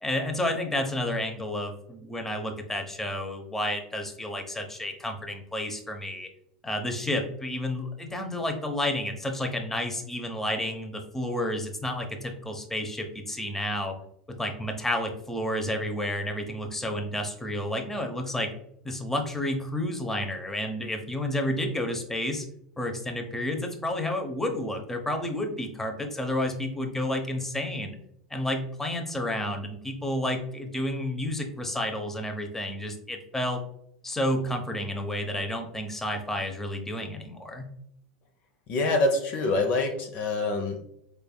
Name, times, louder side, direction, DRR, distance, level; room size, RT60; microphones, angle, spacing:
voice 1, 0.0-6.3 6.6-14.0 14.3-18.5 18.8-22.5 22.8-28.0 28.3-33.6 34.0-37.7, left 1 dB, 10° left, 4 dB, 0.8 m, -31 dB
voice 2, 38.7-40.8, left 2 dB, 45° left, 4 dB, 0.6 m, -25 dB
4.6 x 3.3 x 2.2 m, 0.72 s
hypercardioid pair, 85°, 4 cm